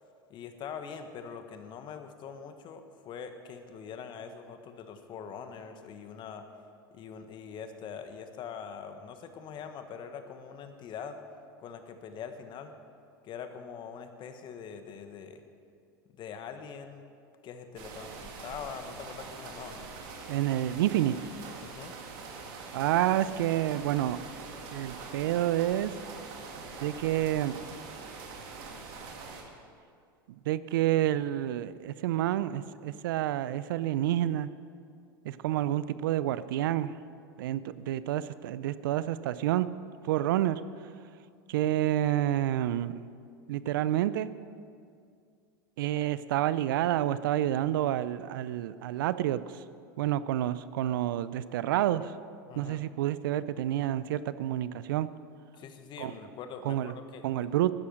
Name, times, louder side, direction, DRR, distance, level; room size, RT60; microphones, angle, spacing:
voice 1, 0.3-6.4 6.9-11.2 11.6-12.7 13.2-15.4 16.2-17.0 17.4-19.8 21.6-21.9 52.5-52.8 55.5-57.3, left 7 dB, 45° left, 8 dB, 1.3 m, -43 dB
sound 1, 17.8-29.4, right 4 dB, 60° right, 2.2 m, -44 dB
voice 2, 20.3-21.2 22.7-24.2 24.7-25.9 26.8-27.6 30.5-34.5 35.2-37.0 37.4-39.7 40.0-40.6 41.5-43.0 43.5-44.3 45.8-49.6 50.0-52.1 52.6-55.1 56.0-56.1 56.6-57.0 57.2-57.7, right 13 dB, 75° right, 15 dB, 0.5 m, -29 dB
12.5 x 10.0 x 6.4 m, 2.3 s
hypercardioid pair, 95°, 11 cm